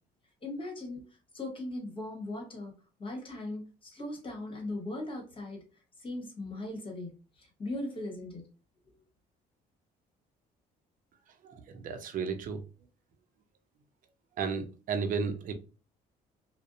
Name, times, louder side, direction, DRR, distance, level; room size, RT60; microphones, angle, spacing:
voice 1, 0.4-1.0 1.3-2.7 3.0-5.6 6.0-7.1 7.4-8.4, left 2 dB, 30° left, 1.2 m, -38 dB
voice 2, 11.4-12.6 14.4-15.5, right 5 dB, 55° right, 0.5 m, -33 dB
2.6 x 2.1 x 2.5 m
cardioid pair, 110°, 17 cm